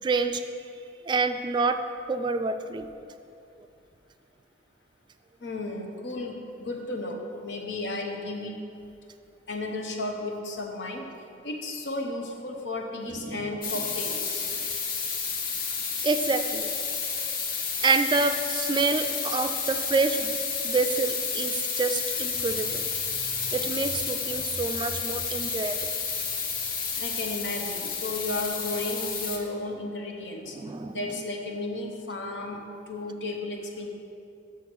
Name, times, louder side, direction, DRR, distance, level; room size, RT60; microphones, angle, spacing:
voice 1, 0.0-0.4 1.1-1.8 2.1-2.9 13.2-13.5 16.0-16.7 17.8-20.3 20.6-23.2 23.5-25.9 30.5-31.0, right 4 dB, 25° right, 8 dB, 0.3 m, -27 dB
voice 2, 5.4-8.6 9.5-11.1 11.4-14.4 27.0-30.6 30.9-33.9, left 2 dB, 85° left, 2 dB, 0.9 m, -34 dB
sound 1, 13.6-29.4, left 6 dB, 55° left, 0.8 m, -31 dB
6.1 x 5.9 x 6.2 m, 2.5 s
head